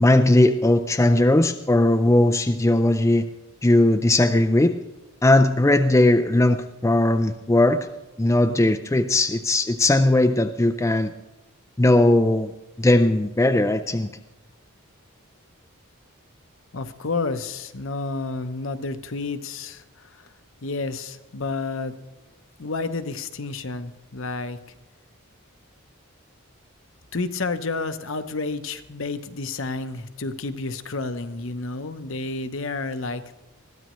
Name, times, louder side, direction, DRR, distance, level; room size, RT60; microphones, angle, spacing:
voice 1, 0.0-3.3 3.6-4.8 5.2-7.8 8.2-11.1 11.8-12.5 12.8-14.1, left 1 dB, 15° left, 7 dB, 0.4 m, -18 dB
voice 2, 16.7-20.3 20.6-21.9 22.6-24.6 27.1-33.4, left 3 dB, 65° left, 9 dB, 0.9 m, -30 dB
21.5 x 15.5 x 3.1 m, 1.0 s
head